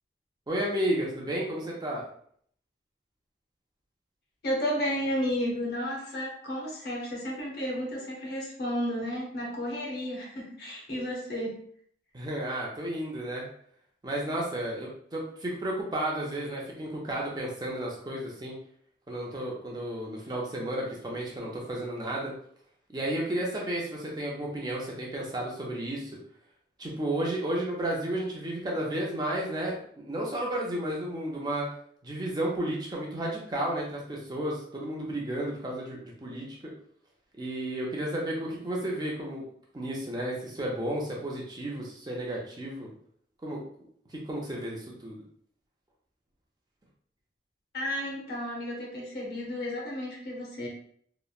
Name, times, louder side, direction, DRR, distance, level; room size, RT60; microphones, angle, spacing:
voice 1, 0.5-2.0 12.1-13.4 14.0-18.6 19.1-22.3 22.9-26.1 26.8-31.7 32.0-36.7 37.4-39.4 39.7-42.9 43.4-43.6 44.1-45.2, right 1 dB, 20° right, -3 dB, 0.5 m, -32 dB
voice 2, 4.4-11.6 47.7-50.7, equal, 55° left, -2 dB, 0.8 m, -32 dB
2.9 x 2.1 x 2.3 m, 0.62 s
head